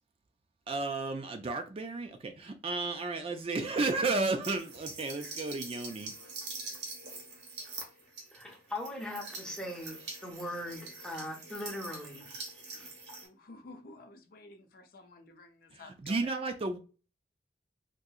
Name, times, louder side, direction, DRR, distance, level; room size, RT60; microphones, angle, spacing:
voice 1, 0.7-2.1 2.6-6.1 15.7-16.8, right 3 dB, 35° right, 0.3 m, -32 dB
sound 1, 4.4-13.3, right 3 dB, 85° right, 1.2 m, -44 dB
voice 2, 8.3-12.3 12.7-12.9, left 1 dB, 5° left, 0.7 m, -40 dB
voice 3, 13.2-16.3, left 2 dB, 55° left, 0.5 m, -52 dB
3.7 x 2.7 x 2.3 m
head